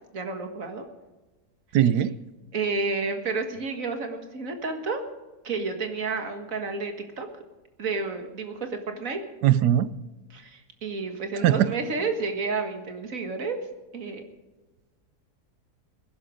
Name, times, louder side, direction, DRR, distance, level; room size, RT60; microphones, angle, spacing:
voice 1, 0.1-0.9 2.5-5.0 5.4-7.3 7.8-9.2 10.3-13.7 13.9-14.2, right 4 dB, 55° right, 6 dB, 2.1 m, -30 dB
voice 2, 1.7-2.2 9.4-9.9 11.4-11.7, right 11 dB, 85° right, 16 dB, 1.3 m, -20 dB
20.0 x 11.5 x 5.1 m, 1.2 s
omnidirectional pair, 1.7 m